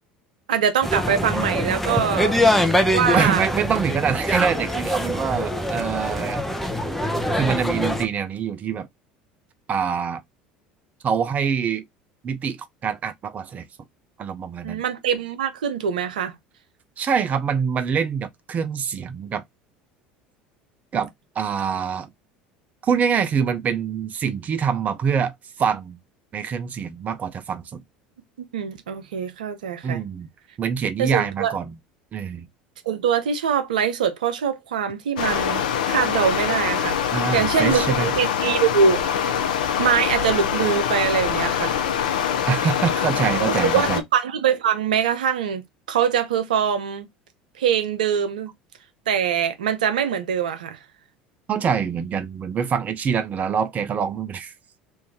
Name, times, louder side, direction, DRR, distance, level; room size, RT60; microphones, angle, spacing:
voice 1, 0.5-2.3 2.9-3.4 14.6-16.3 28.5-30.0 31.0-31.6 32.9-35.6 35.9-37.0 37.3-39.3 39.8-41.8 43.4-45.6 45.9-47.1 47.6-48.5 49.1-50.8, right 7 dB, 80° right, 0.6 m, -23 dB
sound 1, 0.8-8.1, left 1 dB, 5° left, 0.7 m, -23 dB
voice 2, 3.1-6.4 7.3-8.9 9.7-10.2 11.0-11.8 12.2-13.7 14.2-14.8 17.0-19.4 20.9-21.1 21.4-22.1 22.8-26.0 26.3-27.8 29.8-30.3 30.6-31.7 32.1-32.5 37.1-38.1 42.5-44.0 51.5-54.5, right 7 dB, 35° right, 0.5 m, -25 dB
Stream, 35.2-44.0, left 8 dB, 80° left, 0.6 m, -24 dB
3.0 x 2.6 x 3.4 m
hypercardioid pair, 75°, 4 cm